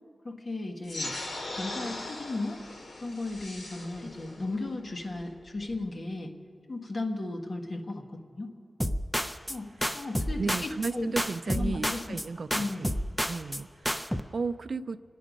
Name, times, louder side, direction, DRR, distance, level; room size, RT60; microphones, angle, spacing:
voice 1, 0.2-1.1 1.5-2.6 3.0-6.3 6.7-8.5 9.5-9.7 9.9-11.1 11.5-12.0 12.5-12.8, left 2 dB, 40° left, 3 dB, 1.5 m, -35 dB
sound 1, 0.8-5.9, left 2 dB, 70° left, 2.4 m, -40 dB
sound 2, 8.8-9.6 9.8-10.9 11.2-12.2 12.5-13.6 13.8-14.2, equal, 5° left, 0.5 m, -30 dB
voice 2, 10.4-12.9 13.3-15.0, right 4 dB, 60° right, 10 dB, 0.4 m, -34 dB
26.5 x 10.0 x 5.2 m, 2.4 s
wide cardioid pair, 115°, 0 cm